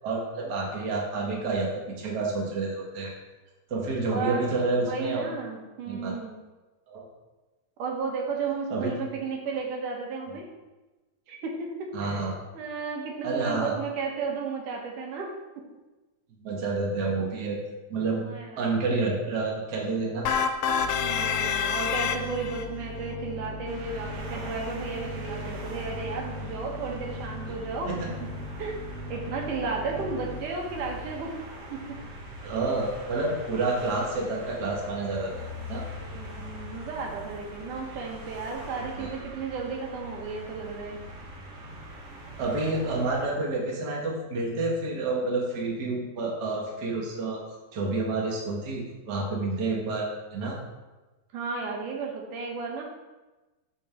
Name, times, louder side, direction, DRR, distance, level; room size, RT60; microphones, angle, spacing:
voice 1, 0.0-3.1 3.7-5.3 5.9-6.1 6.9-7.0 8.7-8.9 11.9-12.3 13.2-13.7 16.4-17.6 17.9-18.3 18.6-20.3 27.9-28.0 29.9-30.0 32.4-35.3 35.7-35.8 39.0-39.1 42.4-47.4 47.7-50.6, right 3 dB, 40° right, -2 dB, 1.9 m, -29 dB
voice 2, 4.1-4.5 4.8-6.3 7.8-10.5 11.3-12.3 12.5-15.3 18.3-18.7 21.0-27.9 28.6-28.7 29.1-31.3 31.7-32.0 36.0-41.0 51.3-52.8, right 4 dB, 85° right, 0 dB, 2.9 m, -33 dB
sound 1, 20.3-22.6, left 7 dB, 75° left, 1.7 m, -27 dB
sound 2, 20.7-31.1, left 2 dB, 15° left, 0.9 m, -39 dB
sound 3, 23.7-43.2, equal, 55° right, 2.4 m, -42 dB
14.0 x 5.4 x 3.6 m, 1.1 s
omnidirectional pair, 3.5 m